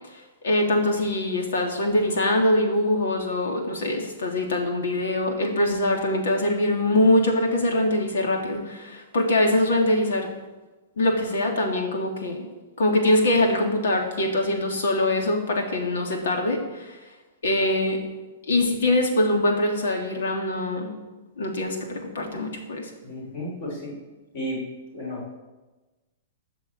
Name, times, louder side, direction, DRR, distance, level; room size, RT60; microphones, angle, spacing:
voice 1, 0.1-10.3 11.0-12.5 12.8-17.0 17.4-18.0 18.4-20.9 21.4-22.9, left 1 dB, 80° left, 2 dB, 3.2 m, -23 dB
voice 2, 23.0-23.9 24.3-24.6 24.9-25.4, equal, 35° left, -4 dB, 5.9 m, -33 dB
14.0 x 6.3 x 9.0 m, 1.2 s
hypercardioid pair, 180°, 0 cm